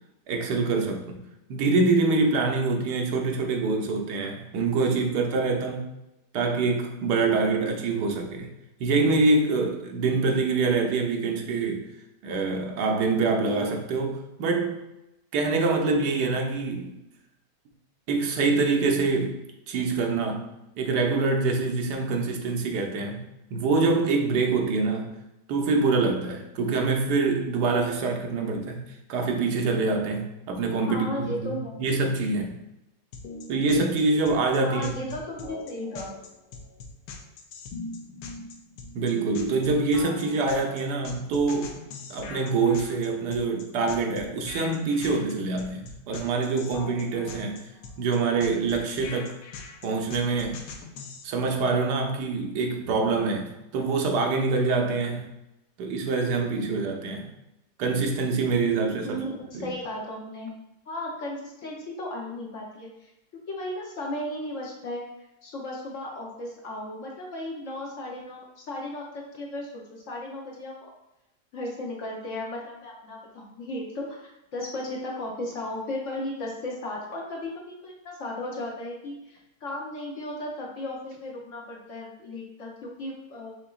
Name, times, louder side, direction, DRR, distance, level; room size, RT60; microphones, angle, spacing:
voice 1, 0.3-1.2 1.5-5.9 6.3-8.5 8.8-11.8 12.2-14.8 15.3-17.0 18.1-19.3 19.7-20.5 20.8-23.2 23.5-25.1 25.5-28.8 29.1-32.6 33.5-35.0 38.9-41.8 42.1-47.6 48.0-49.3 49.8-50.6 51.2-53.5 53.7-55.3 55.8-57.3 57.8-59.2 59.5-59.7, right 3 dB, 75° right, 3 dB, 1.3 m, -25 dB
voice 2, 30.9-31.8 34.6-36.1 59.0-60.5 60.9-65.1 65.4-70.9 71.5-83.5, left 1 dB, 55° left, -2 dB, 1.0 m, -35 dB
sound 1, 33.1-51.2, left 4 dB, 90° left, 1.3 m, -41 dB
5.8 x 3.6 x 2.4 m, 0.89 s
omnidirectional pair, 1.9 m